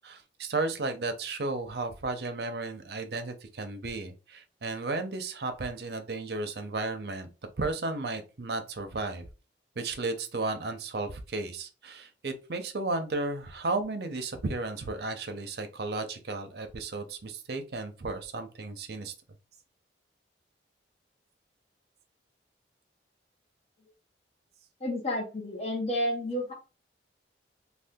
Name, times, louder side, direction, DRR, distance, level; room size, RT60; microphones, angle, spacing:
voice 1, 0.0-7.3 7.6-9.3 9.8-19.1, right 3 dB, 60° right, 7 dB, 0.6 m, -34 dB
voice 2, 24.8-26.5, left 1 dB, 35° left, 1 dB, 0.8 m, -31 dB
2.7 x 2.3 x 3.5 m, 0.31 s
head